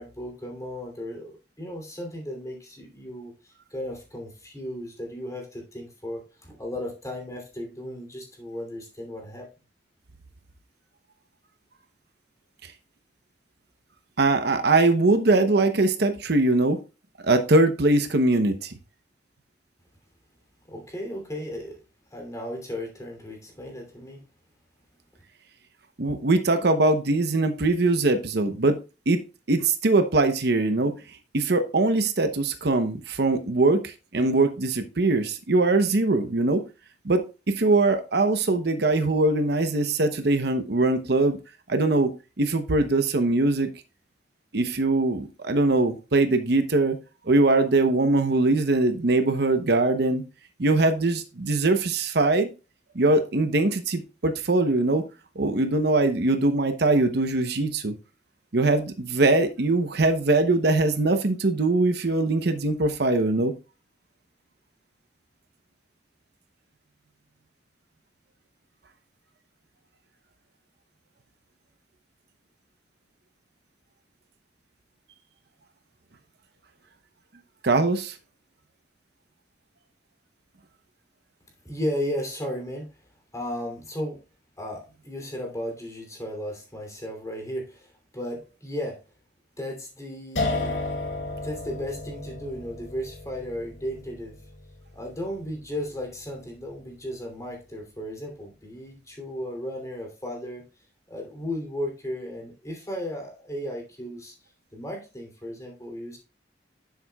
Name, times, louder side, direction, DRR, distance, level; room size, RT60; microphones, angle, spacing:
voice 1, 0.0-3.3 3.7-9.5 20.7-21.8 22.1-24.2 81.6-82.9 83.3-84.2 84.6-89.0 89.6-90.8 91.4-94.4 94.9-100.7 101.1-104.3 104.7-106.2, equal, 20° left, 2.8 m, -35 dB
voice 2, 14.2-16.8 17.2-18.7 26.0-28.8 29.1-29.2 29.5-30.9 31.3-36.6 37.0-41.4 41.7-43.7 44.5-47.0 47.3-50.2 50.6-52.5 52.9-55.0 55.4-58.0 58.5-63.5 77.6-78.2, right 2 dB, 60° right, 0.8 m, -22 dB
sound 1, 90.4-97.3, left 2 dB, 80° left, 2.3 m, -34 dB
10.5 x 7.4 x 2.3 m
head